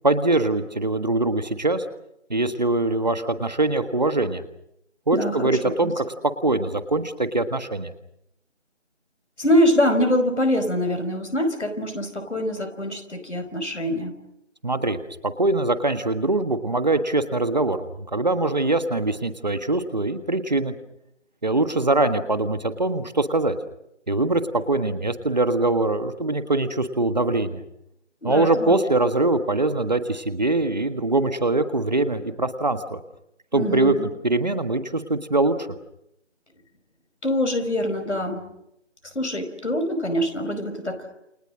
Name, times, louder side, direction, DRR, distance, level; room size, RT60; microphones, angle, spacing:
voice 1, 0.0-1.8 2.3-4.4 5.1-6.0 6.4-7.9 14.6-15.0 15.2-20.7 21.4-23.6 24.1-27.6 28.2-33.0 33.5-33.9 34.2-35.7, right 2 dB, 35° right, 10 dB, 1.6 m, -23 dB
voice 2, 5.1-5.9 9.4-14.1 28.2-28.8 33.5-34.1 37.2-38.4 39.0-41.1, equal, 70° left, 8 dB, 5.1 m, -24 dB
29.0 x 28.0 x 6.3 m, 0.82 s
figure-of-eight pair, 165°, 36 cm